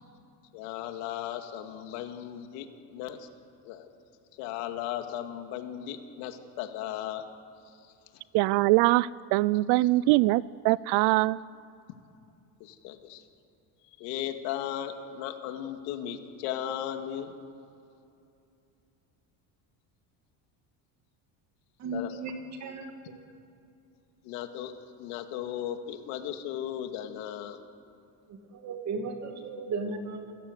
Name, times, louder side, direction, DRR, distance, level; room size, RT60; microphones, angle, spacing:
voice 1, 0.5-3.3 3.6-3.9 4.4-7.2 12.6-13.2 14.0-17.3 21.9-22.2 24.2-24.7 25.0-27.6, left 11 dB, 85° left, 6 dB, 2.3 m, -36 dB
voice 2, 8.3-11.4, right 19 dB, 65° right, 21 dB, 0.5 m, -23 dB
voice 3, 21.8-22.3 22.6-22.9 28.6-30.3, right 3 dB, 35° right, 5 dB, 2.5 m, -35 dB
28.0 x 16.0 x 8.2 m, 2.7 s
cardioid pair, 165°, 45 cm